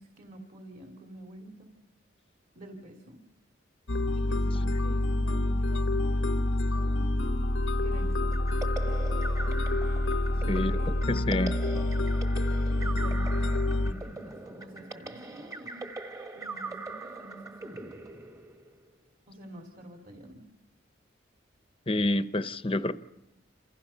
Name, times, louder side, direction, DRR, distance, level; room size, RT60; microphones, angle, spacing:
voice 1, 0.0-1.7 2.5-3.2 4.1-6.5 6.7-7.1 7.8-8.8 10.2-10.7 12.7-15.8 16.3-17.9 19.3-20.4, right 1 dB, 45° right, 2.8 m, -47 dB
sound 1, 3.9-13.9, left 1 dB, 90° left, 1.2 m, -27 dB
sound 2, 8.3-18.9, right 2 dB, 20° right, 1.4 m, -41 dB
voice 2, 11.1-11.5 21.9-22.9, left 1 dB, 30° left, 0.9 m, -27 dB
29.0 x 28.0 x 5.7 m
head